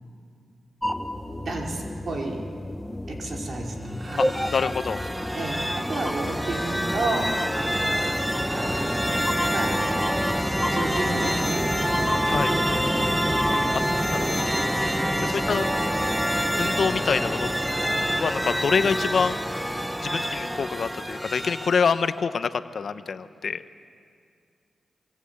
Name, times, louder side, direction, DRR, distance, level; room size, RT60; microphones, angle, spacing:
sound 1, 0.8-13.6, left 1 dB, 15° left, 1.6 m, -33 dB
voice 1, 1.4-2.4 3.1-4.4 5.3-7.4 8.5-9.8 10.7-11.7 12.3-13.2 13.5-13.8 14.8-15.1, right 2 dB, 60° right, 0 dB, 5.1 m, -32 dB
sound 2, 3.9-22.1, equal, 5° right, 1.0 m, -26 dB
voice 2, 4.5-5.0 12.2-12.5 14.3-14.5 15.2-15.7 16.6-17.5 18.2-19.4 20.0-23.6, left 5 dB, 65° left, 11 dB, 1.0 m, -26 dB
28.0 x 25.0 x 8.5 m, 2.3 s
cardioid pair, 60°, 0 cm